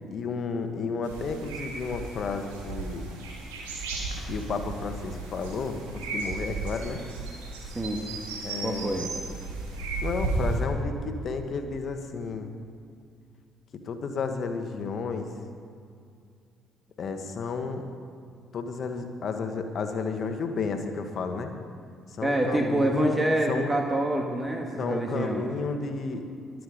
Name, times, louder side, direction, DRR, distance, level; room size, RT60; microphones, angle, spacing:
voice 1, 0.1-3.1 4.3-7.0 8.4-9.1 10.0-12.5 13.7-15.3 17.0-17.8 18.5-21.5 22.1-23.2 23.5-23.7 24.8-26.2, left 4 dB, 50° left, 6 dB, 1.6 m, -32 dB
sound 1, 1.0-10.6, right 3 dB, 80° right, 2.5 m, -34 dB
voice 2, 8.6-9.1 22.2-25.5, right 1 dB, 15° right, 1 dB, 1.9 m, -26 dB
23.0 x 7.9 x 5.3 m, 2.4 s
hypercardioid pair, 50°, 0 cm